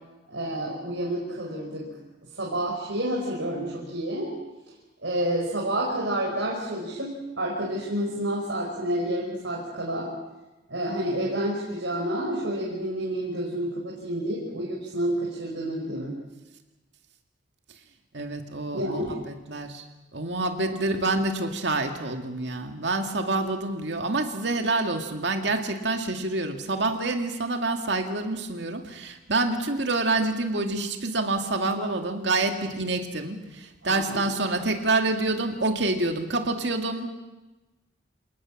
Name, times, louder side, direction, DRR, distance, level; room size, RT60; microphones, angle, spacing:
voice 1, 0.3-1.9 2.3-4.3 5.0-10.1 10.7-16.2 18.7-19.2 33.8-34.2, right 1 dB, 85° right, -3 dB, 5.3 m, -29 dB
voice 2, 18.1-19.8 20.1-37.1, right 2 dB, 65° right, 4 dB, 2.3 m, -27 dB
28.0 x 19.5 x 7.4 m, 1.1 s
head